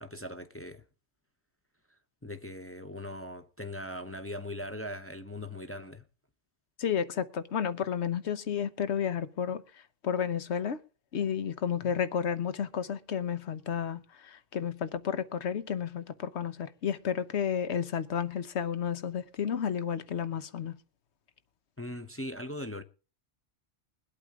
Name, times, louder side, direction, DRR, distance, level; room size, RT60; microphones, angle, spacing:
voice 1, 0.0-0.8 2.2-6.0 11.8-11.9 21.8-22.8, left 1 dB, 15° left, 0.6 m, -40 dB
voice 2, 6.8-9.6 10.0-10.8 11.1-20.8, left 8 dB, 75° left, 1.2 m, -32 dB
21.5 x 8.4 x 3.6 m
omnidirectional pair, 1.1 m